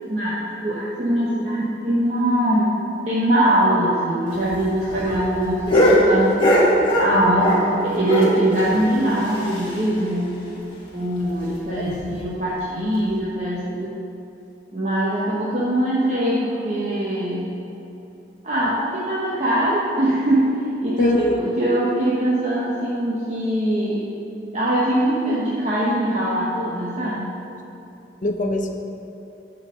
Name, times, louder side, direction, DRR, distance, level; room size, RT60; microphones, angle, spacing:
voice 1, 0.1-6.4 7.0-10.3 10.9-13.9 14.7-17.5 18.4-20.6 20.8-24.0 24.5-27.4, right 1 dB, 40° right, -7 dB, 1.1 m, -22 dB
sound 1, 4.3-7.7 8.0-10.0 10.3-10.4 10.7-10.8 11.2-11.3 11.9-12.2 13.0-13.1, equal, 30° left, 1.6 m, -21 dB
voice 2, 21.0-21.5 28.2-28.7, left 1 dB, 45° left, 4 dB, 0.7 m, -22 dB
10.0 x 4.5 x 6.7 m, 2.8 s
head